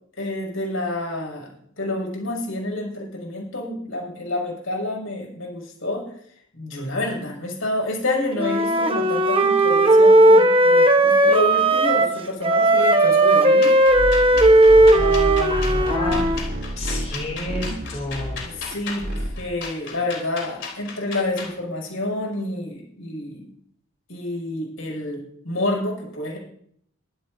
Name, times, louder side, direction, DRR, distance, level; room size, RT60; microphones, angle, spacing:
voice 1, 0.2-1.5 1.8-6.1 6.5-13.7 14.9-16.0 18.4-23.5 24.1-26.4, left 2 dB, 80° left, 0 dB, 6.5 m, -28 dB
Wind instrument woodwind instrument, 8.4-12.2 12.4-16.4, right 1 dB, 25° right, 1.1 m, -16 dB
sound 1, 13.6-21.6, left 5 dB, 60° left, 3.6 m, -36 dB
sound 2, 13.9-19.6, equal, 50° right, 2.8 m, -29 dB
voice 2, 15.5-16.3 16.8-18.4, left 2 dB, 30° left, -3 dB, 3.5 m, -30 dB
23.0 x 12.5 x 2.7 m, 0.66 s
head